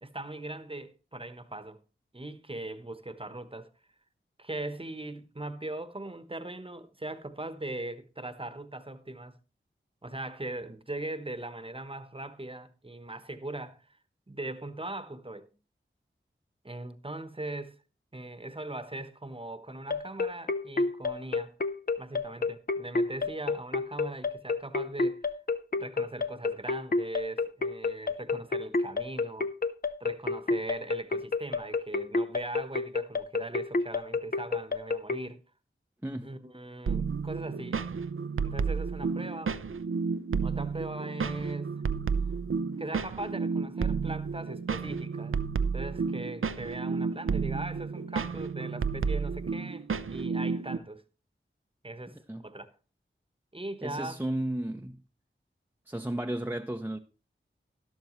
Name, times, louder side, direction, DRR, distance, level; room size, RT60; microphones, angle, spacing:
voice 1, 0.0-1.8 2.1-3.7 4.4-9.4 10.0-14.0 14.3-15.5 16.6-17.7 18.1-21.5 22.0-25.3 25.8-29.5 30.0-35.4 36.2-37.8 38.4-39.6 40.4-41.7 42.8-45.4 45.7-51.0 51.8-52.7 53.5-54.2, right 2 dB, 25° right, 1.0 m, -40 dB
sound 1, 19.9-35.2, left 3 dB, 45° left, 0.6 m, -29 dB
sound 2, 36.9-50.8, right 5 dB, 75° right, 0.5 m, -31 dB
voice 2, 53.8-55.0 55.9-57.0, right 1 dB, 10° right, 0.7 m, -33 dB
12.0 x 11.5 x 3.1 m
wide cardioid pair, 45°, 21 cm